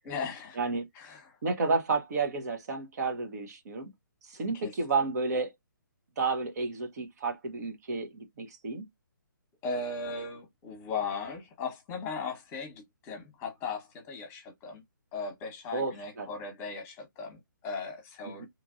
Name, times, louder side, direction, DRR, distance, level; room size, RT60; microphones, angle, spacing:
voice 1, 0.0-0.6 0.9-1.4 4.5-4.7 9.6-14.8 15.1-18.5, left 4 dB, 20° left, 1.1 m, -37 dB
voice 2, 1.4-3.9 4.2-5.5 6.2-8.9 15.7-16.3 18.3-18.5, right 4 dB, 50° right, 0.9 m, -31 dB
3.0 x 2.5 x 2.5 m
figure-of-eight pair, 140°, 11 cm